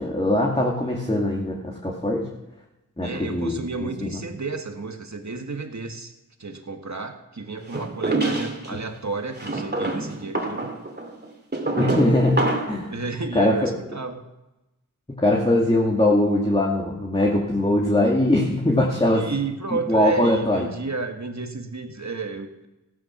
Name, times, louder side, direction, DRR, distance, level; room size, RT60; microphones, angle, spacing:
voice 1, 0.0-2.3 3.0-4.2 11.7-12.4 12.7-12.9 13.3-13.7 15.2-19.3 19.9-20.7, left 1 dB, 15° left, -2 dB, 2.4 m, -21 dB
voice 2, 3.0-6.1 6.4-10.7 12.9-14.2 19.1-22.7, right 4 dB, 55° right, 5 dB, 1.6 m, -32 dB
sound 1, 7.7-8.7 9.4-12.8, right 2 dB, 30° right, 2.6 m, -26 dB
15.5 x 10.0 x 6.0 m, 0.98 s
wide cardioid pair, 50°, 34 cm